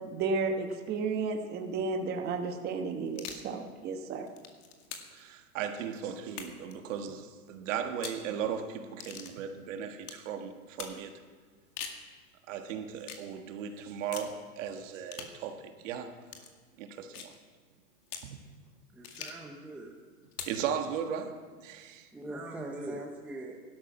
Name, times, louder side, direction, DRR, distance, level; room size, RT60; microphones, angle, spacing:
voice 1, 0.0-4.3, right 4 dB, 20° right, 1.2 m, -33 dB
sound 1, 3.1-3.5 4.1-5.2 6.3-6.7 7.9-8.2 9.0-9.3 10.0-10.2 10.8-11.0 11.6-12.0 13.0-13.3 14.1-14.3 15.1-15.4 16.3-16.5 17.1-17.4 18.1-18.3 19.0-19.5 20.3-20.6, left 6 dB, 75° left, 2.3 m, -43 dB
voice 2, 5.1-11.2 12.5-16.1 16.8-17.3 18.2-18.4 20.5-22.1, right 8 dB, 55° right, 1.6 m, -37 dB
voice 3, 18.9-19.9 22.1-23.6, right 1 dB, 5° right, 0.7 m, -41 dB
16.5 x 12.5 x 6.0 m
hypercardioid pair, 145°, 46 cm